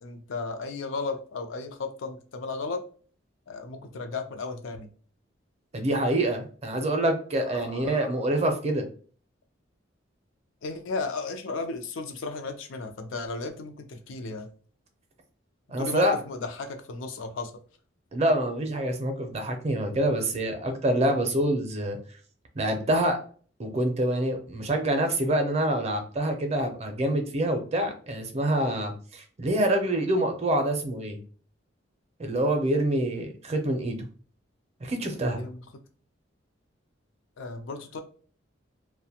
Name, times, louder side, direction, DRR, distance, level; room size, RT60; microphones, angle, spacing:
voice 1, 0.0-2.8 3.5-4.9 7.4-8.3 10.6-14.5 15.8-17.5 35.4-35.6 37.4-38.0, left 3 dB, 80° left, 6 dB, 0.5 m, -35 dB
voice 2, 5.7-8.9 15.7-16.1 18.1-22.0 22.6-23.2 23.6-31.2 32.2-34.1 34.8-35.4, right 1 dB, 35° right, 5 dB, 0.5 m, -26 dB
2.5 x 2.1 x 2.8 m, 0.42 s
head